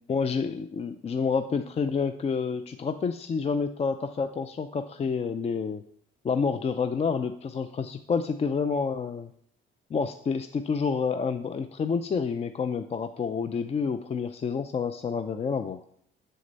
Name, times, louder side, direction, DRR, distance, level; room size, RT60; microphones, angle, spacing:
voice 1, 0.1-5.8 6.2-9.3 9.9-15.8, left 5 dB, 30° left, 9 dB, 0.4 m, -29 dB
6.6 x 6.4 x 4.0 m, 0.66 s
cardioid pair, 90°, 20 cm